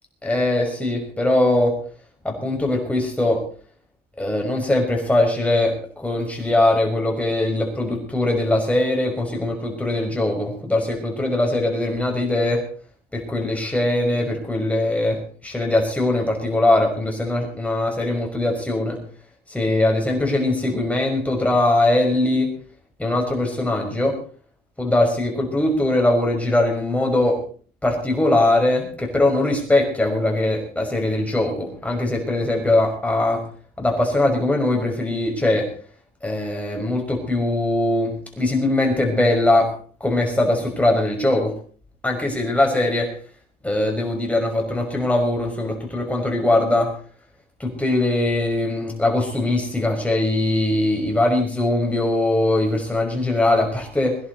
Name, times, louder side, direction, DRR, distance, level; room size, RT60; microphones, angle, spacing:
voice 1, 0.2-1.7 2.2-3.4 4.2-12.6 13.1-19.0 19.5-22.5 23.0-24.2 24.8-27.4 27.8-33.4 33.8-35.7 36.2-39.7 40.0-41.5 42.0-43.1 43.6-46.9 47.6-54.2, left 2 dB, 10° left, 1 dB, 5.5 m, -21 dB
22.0 x 11.0 x 4.1 m, 0.43 s
cardioid pair, 110°, 17 cm